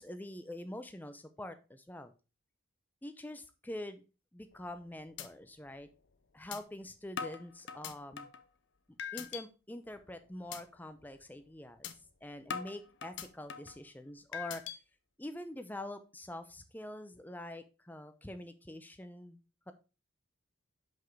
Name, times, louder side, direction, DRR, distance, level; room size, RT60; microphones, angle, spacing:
voice 1, 0.0-2.1 3.0-4.0 4.3-5.9 6.3-8.3 9.1-11.9 12.2-14.7 15.2-19.4 19.7-19.8, left 1 dB, 10° left, 9 dB, 0.6 m, -45 dB
sound 1, 4.5-4.8 5.2-5.3 5.7-5.8 6.5-6.6 7.2-8.4 9.0-9.4 9.9-10.1 10.5-10.6 11.0-11.2 11.8-11.9 12.5-13.8 14.3-14.8, left 7 dB, 55° left, 0.7 m, -41 dB
6.1 x 5.5 x 4.6 m, 0.32 s
head